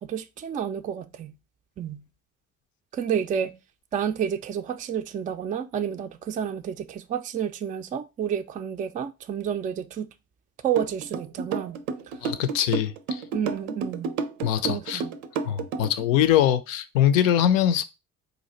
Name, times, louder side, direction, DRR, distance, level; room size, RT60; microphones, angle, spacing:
voice 1, 0.0-1.4 1.8-2.1 2.9-3.6 3.9-10.1 10.6-11.8 12.1-12.2 13.3-14.1 14.6-15.1, right 8 dB, 20° right, 0.3 m, -30 dB
sound 1, 10.8-16.0, right 5 dB, 80° right, 0.5 m, -30 dB
voice 2, 12.2-13.2 14.4-15.0 15.4-17.8, left 10 dB, 70° left, 0.5 m, -22 dB
3.9 x 2.4 x 4.1 m
figure-of-eight pair, 45°, 41 cm